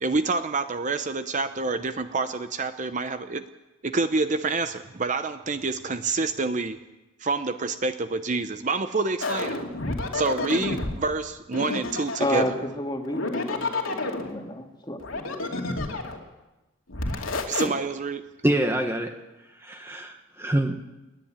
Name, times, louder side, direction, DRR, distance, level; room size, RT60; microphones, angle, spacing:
voice 1, 0.0-3.4 3.8-6.8 7.2-9.6 10.1-12.4 17.5-18.2, right 3 dB, 35° right, 9 dB, 0.7 m, -27 dB
sound 1, 9.2-11.0 11.5-12.6 13.0-14.3 15.0-16.2 16.9-17.7, left 2 dB, 75° left, 2.6 m, -29 dB
voice 2, 12.2-15.3, left 1 dB, 20° left, 3 dB, 2.0 m, -30 dB
voice 3, 18.4-19.1 19.6-20.7, right 1 dB, 10° right, 4 dB, 1.1 m, -25 dB
29.5 x 10.5 x 8.8 m, 1.1 s
head